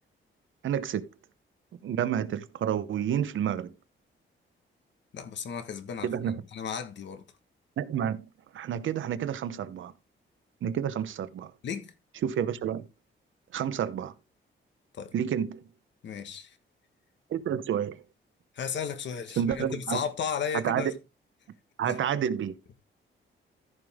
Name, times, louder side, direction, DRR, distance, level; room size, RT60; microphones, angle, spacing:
voice 1, 0.6-1.1 1.8-3.7 6.0-6.4 7.8-8.3 8.5-9.9 10.6-11.5 12.2-12.9 13.5-14.1 15.1-15.6 17.3-18.0 19.4-20.0 20.5-20.9 21.8-22.6, right 9 dB, 70° right, 0.9 m, -29 dB
voice 2, 5.1-7.2 11.6-11.9 14.9-15.1 16.0-16.6 18.5-20.9 21.8-22.0, left 7 dB, 60° left, 1.5 m, -34 dB
14.5 x 5.3 x 3.6 m
wide cardioid pair, 175°, 21 cm